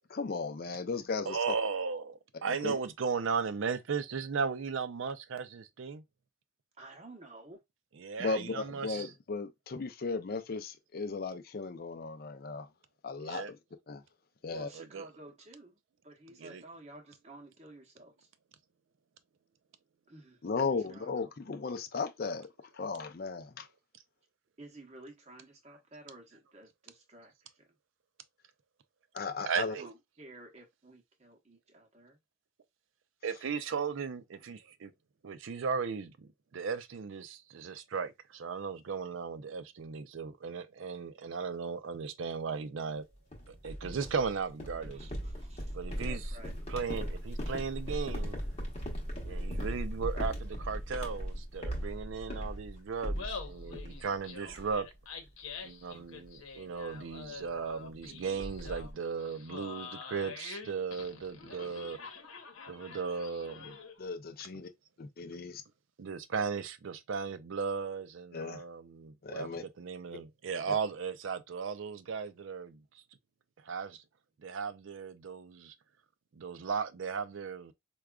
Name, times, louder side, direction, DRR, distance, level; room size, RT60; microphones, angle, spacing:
voice 1, 0.1-1.6 2.5-2.8 8.2-12.7 13.0-13.6 13.9-14.0 14.4-14.7 20.4-23.7 29.1-29.8 64.0-64.7 65.0-65.6 68.3-68.6 69.2-69.6 70.7-70.8, left 4 dB, 45° left, 0.4 m, -36 dB
voice 2, 1.3-6.0 8.0-9.0 13.3-13.5 14.8-15.1 16.4-16.6 29.5-29.9 33.2-34.9 35.2-43.0 43.5-45.1 45.7-46.2 46.7-48.4 49.2-54.9 55.6-62.0 62.7-63.8 66.0-72.8 73.6-74.0 74.4-75.7 76.4-77.7, right 5 dB, 65° right, 0.4 m, -36 dB
voice 3, 6.8-7.6 14.4-18.3 20.1-21.1 24.6-27.7 29.5-32.2 44.9-45.8 46.0-46.5, right 2 dB, 30° right, 0.8 m, -52 dB
sound 1, 43.3-54.2 54.5-55.0 55.3-55.5 55.9-56.2 57.2-57.3 57.6-57.7 58.0-58.9, equal, 30° left, 0.9 m, -38 dB
Laughter, 53.0-64.1, left 5 dB, 80° left, 0.8 m, -46 dB
4.7 x 2.2 x 2.3 m
head